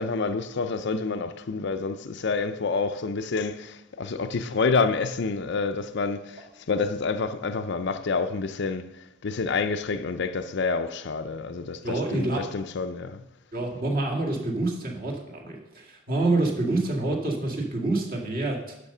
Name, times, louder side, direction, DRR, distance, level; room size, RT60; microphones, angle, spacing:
voice 1, 0.0-6.4 6.7-8.9 9.2-13.2, left 4 dB, 50° left, 0.5 m, -28 dB
voice 2, 11.8-12.4 13.5-18.9, right 2 dB, 40° right, 2.0 m, -27 dB
10.5 x 6.7 x 5.5 m
head